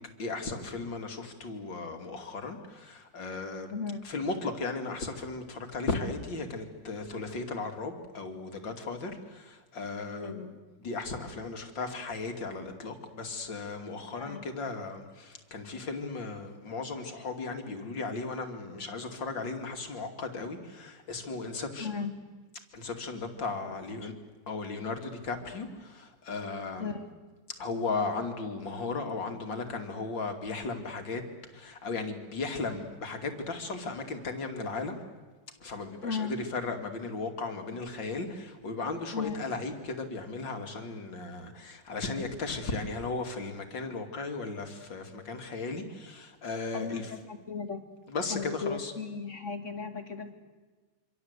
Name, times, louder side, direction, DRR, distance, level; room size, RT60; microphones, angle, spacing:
voice 1, 0.2-3.7 4.0-10.4 10.8-21.9 22.7-24.1 24.5-26.9 27.6-31.2 31.5-35.0 35.6-47.0 48.1-48.9, left 3 dB, 80° left, 5 dB, 3.3 m, -36 dB
voice 2, 3.7-4.1 10.2-10.6 14.1-14.4 21.8-22.1 23.7-23.8 24.0-24.1 26.8-27.1 36.0-36.4 39.1-39.4 46.7-47.8 48.3-50.3, left 5 dB, 40° left, 7 dB, 2.5 m, -36 dB
26.5 x 25.5 x 8.2 m, 1.3 s
omnidirectional pair, 2.0 m